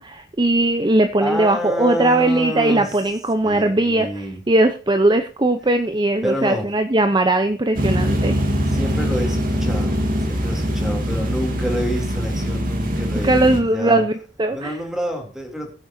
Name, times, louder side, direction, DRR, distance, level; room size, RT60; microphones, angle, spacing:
voice 1, 0.0-8.4 13.2-14.1 14.4-14.7, right 2 dB, 25° right, 7 dB, 0.8 m, -19 dB
voice 2, 1.2-3.1 3.4-4.4 6.2-6.7 8.7-14.0 14.5-15.7, equal, 5° right, 2 dB, 3.1 m, -28 dB
sound 1, 7.7-13.6, equal, 50° right, 2.4 m, -22 dB
22.5 x 7.8 x 2.8 m, 0.39 s
head